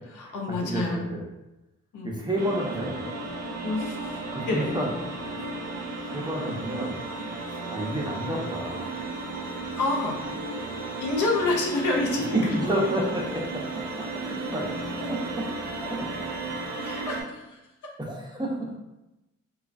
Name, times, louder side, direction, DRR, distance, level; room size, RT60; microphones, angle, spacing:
voice 1, 0.0-1.0 1.9-2.1 3.6-4.2 4.5-4.7 9.8-10.2 11.0-12.7 16.8-17.6, left 2 dB, 85° left, -1 dB, 0.7 m, -28 dB
voice 2, 0.6-1.2 2.0-3.2 4.3-4.9 5.2-5.8 6.1-7.0 7.7-8.9 12.3-13.8 14.1-16.7 18.0-18.8, right 1 dB, 15° right, -1 dB, 0.6 m, -30 dB
sound 1, 2.4-17.2, right 2 dB, 65° right, 0.5 m, -34 dB
3.1 x 2.3 x 2.4 m, 0.97 s
cardioid pair, 80°, 30 cm